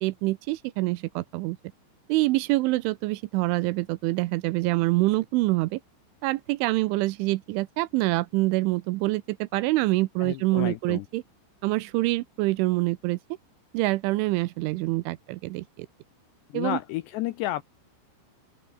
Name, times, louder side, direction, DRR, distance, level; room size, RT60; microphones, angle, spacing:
voice 1, 0.0-1.6 2.1-5.8 6.2-11.2 11.6-13.2 13.7-15.9 16.5-16.8, right 20 dB, 80° right, 3.0 m, -26 dB
voice 2, 10.2-11.1 16.5-17.6, left 15 dB, 85° left, 2.5 m, -31 dB
open air
omnidirectional pair, 5.8 m